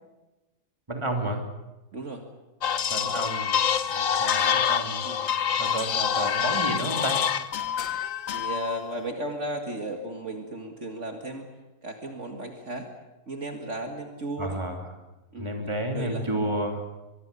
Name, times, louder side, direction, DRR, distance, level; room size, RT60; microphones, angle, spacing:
voice 1, 0.9-1.4 2.9-3.6 3.9-5.0 5.6-7.2 14.4-14.9 15.4-16.8, right 1 dB, 20° right, 3 dB, 3.0 m, -31 dB
voice 2, 1.9-2.2 5.0-5.2 8.3-11.5 11.8-12.9 13.3-14.6 15.3-15.5 15.9-16.3, right 1 dB, 50° right, 3 dB, 2.2 m, -35 dB
sound 1, 2.6-8.9, left 8 dB, 60° left, 1.3 m, -26 dB
23.5 x 23.0 x 6.9 m, 1.1 s
omnidirectional pair, 1.6 m